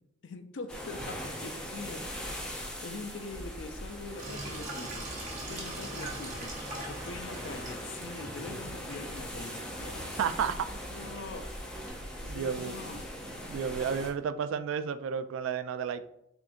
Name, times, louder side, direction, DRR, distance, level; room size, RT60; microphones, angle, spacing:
voice 1, 0.2-2.5 2.8-6.5 6.9-10.6 10.8-11.4 12.3-13.1, left 3 dB, 65° left, 8 dB, 0.5 m, -44 dB
sound 1, 0.7-14.1, equal, 5° left, 0.5 m, -41 dB
Sink (filling or washing), 4.1-11.9, right 1 dB, 40° right, 0.9 m, -43 dB
voice 2, 10.2-10.6 12.2-12.8 13.5-16.1, right 7 dB, 80° right, 11 dB, 0.3 m, -32 dB
3.7 x 3.5 x 2.5 m, 0.79 s
head